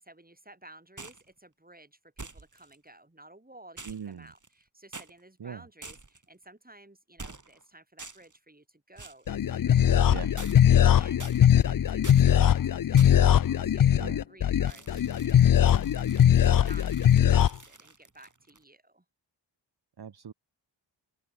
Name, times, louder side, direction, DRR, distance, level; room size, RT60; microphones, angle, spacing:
voice 1, 0.0-10.4 10.7-15.6 16.5-19.0, right 1 dB, 20° right, 7.3 m, -54 dB
sound 1, 1.0-1.3 2.2-2.8 3.8-4.6 4.9-5.1 5.8-6.3 7.2-7.6 8.0-8.4 9.0-9.3 10.4-10.9 11.2-11.7 12.0-12.3 13.0-13.3 14.7-18.6, right 3 dB, 40° right, 6.7 m, -46 dB
voice 2, 3.9-4.3 5.4-5.6 10.1-10.3 14.0-14.2 20.0-20.3, right 7 dB, 55° right, 1.0 m, -40 dB
sound 2, 9.3-17.5, left 10 dB, 50° left, 0.5 m, -21 dB
open air
wide cardioid pair, 80°, 45 cm